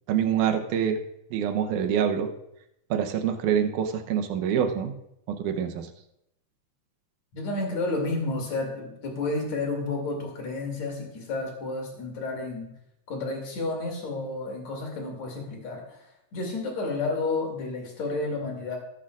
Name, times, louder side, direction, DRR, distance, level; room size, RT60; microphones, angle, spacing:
voice 1, 0.1-1.0 1.3-2.3 2.9-4.9 5.3-5.9, right 8 dB, 75° right, 6 dB, 2.3 m, -26 dB
voice 2, 7.3-12.7 13.1-18.8, left 3 dB, 60° left, 1 dB, 3.5 m, -31 dB
19.5 x 8.5 x 2.5 m, 0.80 s
omnidirectional pair, 3.7 m